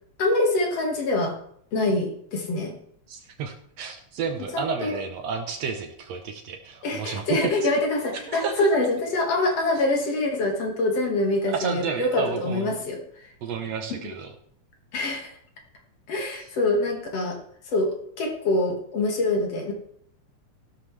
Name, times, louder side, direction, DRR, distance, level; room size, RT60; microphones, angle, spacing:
voice 1, 0.2-1.4 1.7-2.8 4.5-5.0 6.8-13.0 14.9-15.4 16.1-17.4 17.7-19.7, left 2 dB, 55° left, 1 dB, 2.8 m, -25 dB
voice 2, 3.1-7.4 8.3-8.7 11.4-12.8 13.4-14.3 16.3-16.5, right 6 dB, 65° right, 5 dB, 1.9 m, -31 dB
15.5 x 12.5 x 3.3 m, 0.69 s
omnidirectional pair, 3.5 m